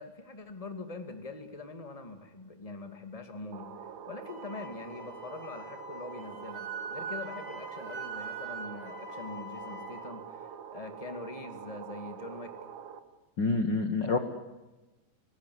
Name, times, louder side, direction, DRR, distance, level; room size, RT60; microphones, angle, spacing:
voice 1, 0.0-12.5, left 3 dB, 15° left, 7 dB, 1.7 m, -43 dB
sound 1, 3.5-13.0, right 8 dB, 60° right, 2.8 m, -45 dB
Wind instrument woodwind instrument, 4.2-10.1, right 3 dB, 90° right, 8.6 m, -42 dB
voice 2, 13.4-14.2, left 3 dB, 65° left, 8 dB, 1.1 m, -27 dB
26.5 x 19.0 x 9.6 m, 1.1 s
omnidirectional pair, 4.3 m